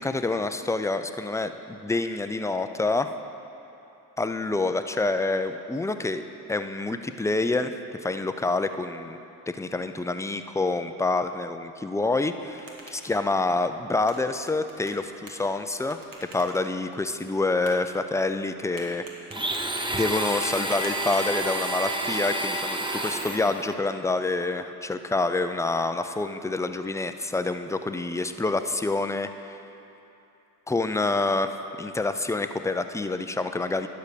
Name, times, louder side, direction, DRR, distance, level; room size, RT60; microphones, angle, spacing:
voice 1, 0.0-3.1 4.2-7.7 8.0-9.2 9.5-12.7 13.0-19.0 19.9-29.6 30.7-33.9, left 3 dB, 5° left, 9 dB, 0.4 m, -27 dB
sound 1, 12.2-21.9, right 2 dB, 50° right, 1.8 m, -49 dB
Domestic sounds home sounds, 19.3-23.7, right 1 dB, 10° right, 0.9 m, -29 dB
11.0 x 5.1 x 6.8 m, 2.9 s
supercardioid pair, 55°, 43 cm